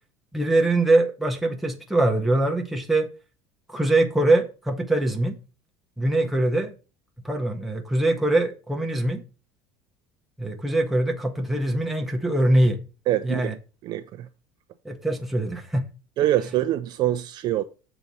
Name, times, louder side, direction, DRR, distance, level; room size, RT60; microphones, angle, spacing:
voice 1, 0.3-3.1 3.7-5.4 6.0-6.7 7.2-9.2 10.4-12.8 13.2-13.5 14.8-15.9, right 2 dB, ahead, 0.8 m, -23 dB
voice 2, 13.1-13.5 13.8-14.3 16.2-17.6, right 13 dB, 35° right, 0.4 m, -24 dB
6.9 x 4.0 x 6.0 m
cardioid pair, 170°, 12 cm